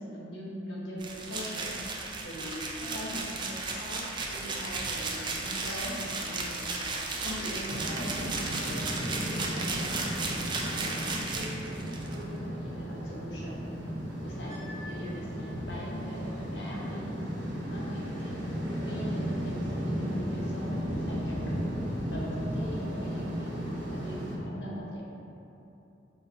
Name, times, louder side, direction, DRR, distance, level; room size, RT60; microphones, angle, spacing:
voice 1, 0.0-1.8 2.2-6.7 7.2-9.8 10.6-13.7 14.2-17.1 17.7-18.4 18.8-21.6 22.1-25.0, equal, 70° left, -4 dB, 0.9 m, -41 dB
sound 1, 1.0-12.2, right 3 dB, 25° right, 0.4 m, -35 dB
sound 2, 7.7-24.4, equal, 80° right, 0.8 m, -35 dB
4.0 x 4.0 x 2.8 m, 2.9 s
head